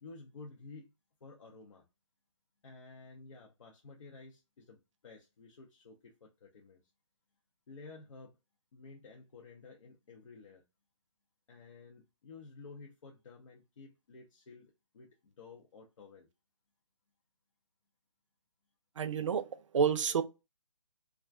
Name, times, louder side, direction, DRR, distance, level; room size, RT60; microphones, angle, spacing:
voice 1, 0.0-0.9 1.2-1.9 2.6-6.8 7.7-8.4 8.7-10.6 11.5-16.3, left 3 dB, 70° left, 0.7 m, -53 dB
voice 2, 19.0-20.2, right 6 dB, 70° right, 0.4 m, -30 dB
2.3 x 2.2 x 2.4 m
hypercardioid pair, 155°, 17 cm